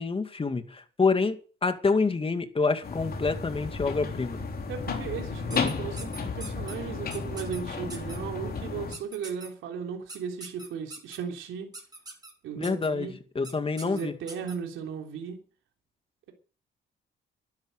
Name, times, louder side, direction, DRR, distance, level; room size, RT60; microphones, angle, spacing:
voice 1, 0.0-1.4 1.6-4.4 12.6-14.1, left 4 dB, 25° left, 2.3 m, -27 dB
sound 1, 2.8-9.0, left 4 dB, 50° left, 3.9 m, -33 dB
voice 2, 4.7-11.7 12.4-13.2 13.8-15.4, right 6 dB, 85° right, 3.4 m, -36 dB
sound 2, 5.5-6.8 7.1-7.6 7.9-8.2 8.9-9.5 10.1-11.2 11.7-12.3 12.6-12.9 13.4-13.5 13.8-14.6, right 2 dB, 20° right, 7.1 m, -42 dB
12.0 x 11.5 x 9.0 m
cardioid pair, 90°, 20 cm